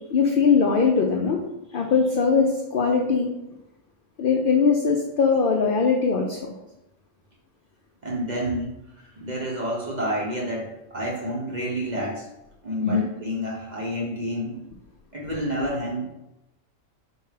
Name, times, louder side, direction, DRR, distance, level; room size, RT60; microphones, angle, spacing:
voice 1, 0.1-1.4 1.7-3.3 4.2-6.5 12.8-13.1, left 5 dB, 70° left, 1 dB, 0.5 m, -21 dB
voice 2, 8.0-12.3 12.6-14.6 15.1-16.1, equal, 45° right, -2 dB, 0.6 m, -29 dB
4.5 x 2.2 x 4.7 m, 0.91 s
omnidirectional pair, 1.4 m